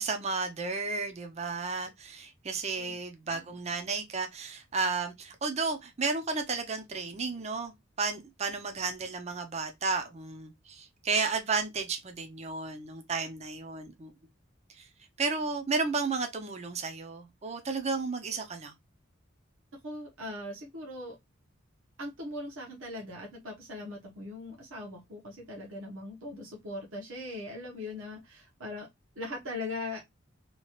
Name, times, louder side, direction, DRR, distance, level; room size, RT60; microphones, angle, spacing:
voice 1, 0.0-14.1 14.7-14.9 15.2-18.7, right 4 dB, 30° right, 0.5 m, -33 dB
voice 2, 19.8-21.2 22.0-28.9 29.2-30.0, left 2 dB, 75° right, 0.9 m, -40 dB
2.9 x 2.3 x 2.9 m
head